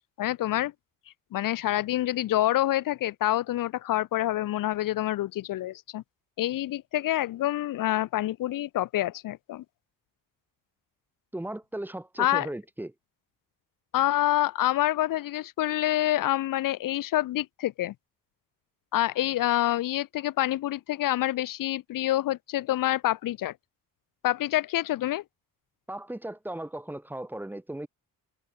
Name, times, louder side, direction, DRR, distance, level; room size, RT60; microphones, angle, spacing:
voice 1, 0.2-0.7 1.3-6.0 6.4-9.6 12.2-12.5 13.9-17.9 18.9-23.5 24.2-25.2, left 14 dB, 70° left, 1.0 m, -27 dB
voice 2, 11.3-12.9 25.9-27.9, right 1 dB, 5° right, 2.4 m, -36 dB
cardioid pair, 180°, 35 cm